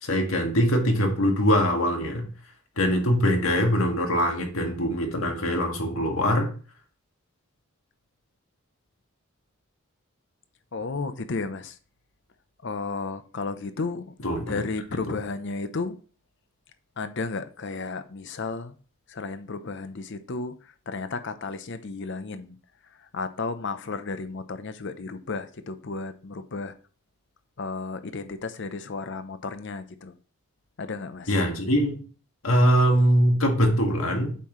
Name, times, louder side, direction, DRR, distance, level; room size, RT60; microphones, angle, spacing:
voice 1, 0.0-2.3 2.8-6.5 14.2-14.6 31.3-32.0 32.4-34.4, equal, 80° left, 1.9 m, -22 dB
voice 2, 10.7-11.8 12.6-14.1 14.5-16.0 17.0-18.8 19.1-22.6 23.0-26.7 27.6-30.1 30.8-31.3, left 3 dB, 60° left, 0.7 m, -33 dB
8.3 x 5.6 x 3.1 m
head